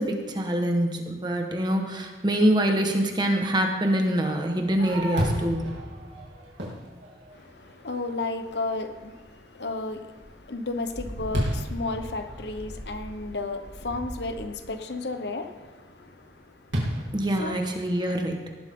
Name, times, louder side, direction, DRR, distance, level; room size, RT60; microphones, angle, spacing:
voice 1, 0.0-5.7 17.1-18.4, right 1 dB, 25° right, 3 dB, 1.5 m, -25 dB
Fireworks, 4.4-7.8 8.3-8.4 9.0-9.4 9.8-14.6 16.7-18.1, equal, 85° right, 3.4 m, -33 dB
voice 2, 7.3-17.6, left 3 dB, 70° left, 7 dB, 1.1 m, -34 dB
18.5 x 12.0 x 3.8 m, 1.4 s
head